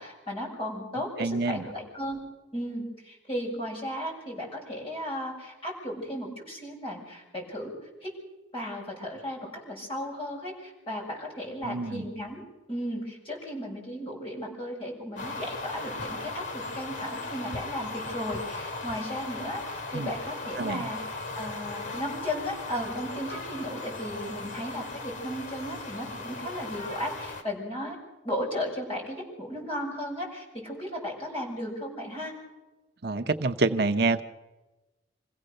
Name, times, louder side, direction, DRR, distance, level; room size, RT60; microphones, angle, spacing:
voice 1, 0.0-2.3 2.5-7.7 8.0-8.1 8.5-9.4 9.7-12.4 12.7-28.0 28.2-32.4, equal, 30° left, -3 dB, 7.0 m, -35 dB
voice 2, 1.2-1.7 11.6-12.0 19.9-20.1 20.6-20.9 33.0-34.2, right 3 dB, 55° right, 7 dB, 0.8 m, -27 dB
sound 1, 15.2-27.4, left 3 dB, 80° left, 2.6 m, -37 dB
26.5 x 16.0 x 6.6 m, 1.1 s
head